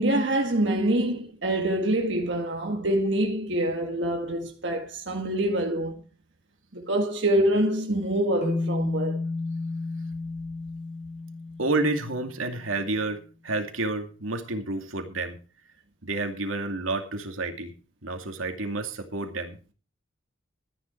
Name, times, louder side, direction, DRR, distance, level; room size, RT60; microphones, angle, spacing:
voice 1, 0.0-5.9 6.7-9.2, right 1 dB, 60° right, 1.9 m, -25 dB
sound 1, 8.4-12.7, left 3 dB, 35° left, 4.9 m, -32 dB
voice 2, 11.6-15.4 16.0-17.7 18.0-19.6, right 2 dB, 90° right, 2.4 m, -30 dB
13.5 x 10.5 x 4.5 m
head